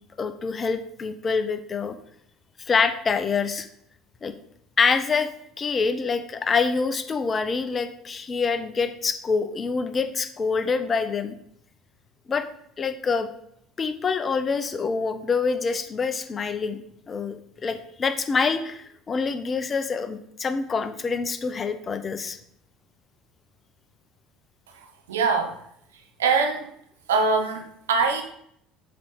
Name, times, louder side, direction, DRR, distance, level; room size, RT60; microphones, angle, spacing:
voice 1, 0.2-2.0 2.7-3.7 4.2-4.3 4.8-5.3 5.6-11.4 12.3-12.5 12.8-13.3 13.8-22.4, left 5 dB, 30° left, 9 dB, 0.6 m, -26 dB
voice 2, 24.7-25.6 26.2-26.7 27.1-28.2, right 4 dB, 75° right, 4 dB, 0.7 m, -23 dB
7.2 x 4.2 x 3.1 m, 0.71 s
figure-of-eight pair, 60°, 0 cm